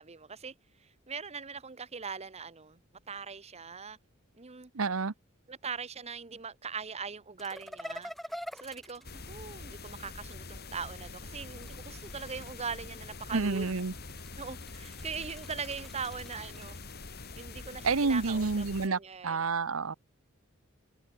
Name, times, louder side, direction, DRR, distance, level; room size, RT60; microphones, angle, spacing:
voice 1, 0.0-2.8 3.1-4.0 4.4-4.7 5.5-8.1 8.5-13.7 14.4-16.8 17.4-19.4, right 5 dB, 30° right, 1.0 m, -41 dB
voice 2, 4.7-5.1 13.3-13.9 17.8-19.9, right 4 dB, 70° right, 0.9 m, -29 dB
sound 1, 7.4-10.1 11.4-12.9 13.5-17.8, equal, ahead, 3.7 m, -47 dB
sound 2, 9.0-18.9, left 3 dB, 50° left, 3.0 m, -45 dB
head